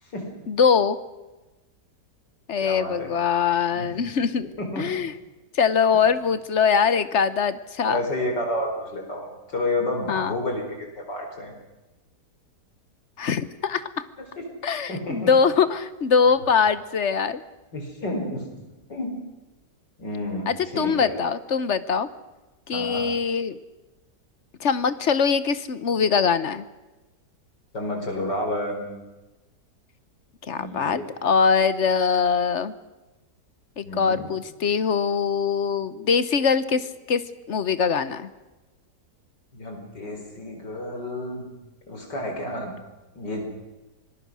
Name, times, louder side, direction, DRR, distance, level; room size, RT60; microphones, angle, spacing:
voice 1, 0.5-1.0 2.5-4.5 4.8-5.1 5.5-8.0 10.1-10.4 13.2-14.0 14.6-17.4 20.5-22.1 22.7-23.6 24.6-26.6 30.4-32.7 33.8-37.2 37.5-38.3, left 6 dB, 50° left, 14 dB, 1.0 m, -22 dB
voice 2, 2.6-3.1 3.7-4.0 4.4-4.8 7.9-10.6 11.0-11.5 14.2-14.4 14.9-15.3 17.7-18.6 18.9-19.1 20.0-21.2 22.7-23.1 27.7-29.0 30.6-31.1 33.8-34.3 39.5-41.5 41.9-42.7 43.2-43.4, left 1 dB, 85° left, 3 dB, 5.1 m, -30 dB
25.5 x 20.0 x 6.2 m, 1.1 s
omnidirectional pair, 1.8 m